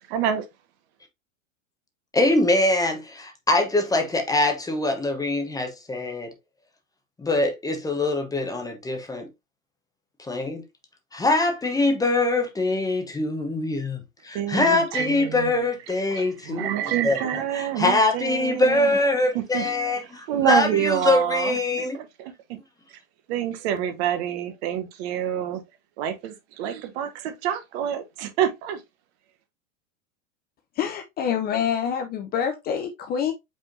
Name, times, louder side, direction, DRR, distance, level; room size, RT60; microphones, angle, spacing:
voice 1, 0.1-0.4 14.3-15.5 16.1-18.9 19.5-19.7 20.3-22.1 23.3-25.6 26.0-28.8, right 10 dB, 50° right, 1.1 m, -27 dB
voice 2, 2.1-6.3 7.2-9.3 10.2-10.6 11.1-16.7 17.0-22.0, left 2 dB, 10° left, 0.9 m, -23 dB
voice 3, 30.8-33.3, left 8 dB, 25° left, 0.5 m, -26 dB
5.2 x 3.5 x 2.6 m
hypercardioid pair, 110°, 40 cm